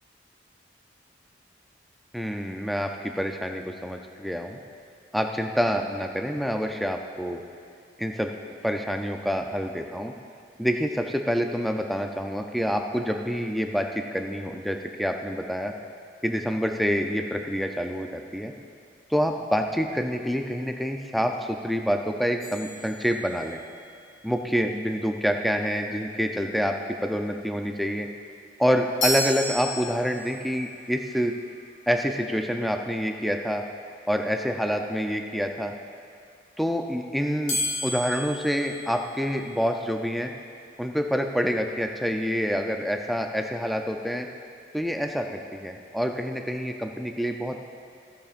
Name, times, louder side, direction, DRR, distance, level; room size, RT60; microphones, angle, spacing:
voice 1, 2.1-4.6 5.1-7.4 8.0-8.3 8.6-10.1 10.6-15.7 16.2-18.5 19.1-23.6 24.2-26.8 27.0-28.1 28.6-31.3 31.9-33.6 34.1-35.7 36.6-37.6 37.8-40.3 40.8-44.3 44.7-47.6, equal, ahead, 3 dB, 0.5 m, -27 dB
sound 1, 22.4-23.7 29.0-30.5 37.5-39.6, left 1 dB, 40° left, 2.2 m, -32 dB
15.0 x 13.5 x 2.5 m, 2.2 s
head